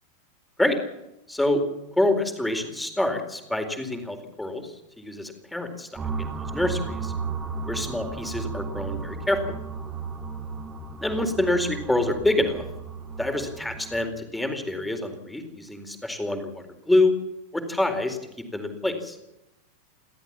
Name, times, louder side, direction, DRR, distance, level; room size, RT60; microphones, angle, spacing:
voice 1, 1.3-1.6 2.0-5.9 6.2-7.1 7.7-9.4 11.0-12.6 13.2-17.1 17.5-18.2 18.5-19.2, left 1 dB, 5° left, 6 dB, 4.1 m, -26 dB
sound 1, 6.0-14.0, right 5 dB, 20° right, 3.2 m, -34 dB
30.0 x 13.0 x 7.4 m, 0.92 s
figure-of-eight pair, 90°, 0 cm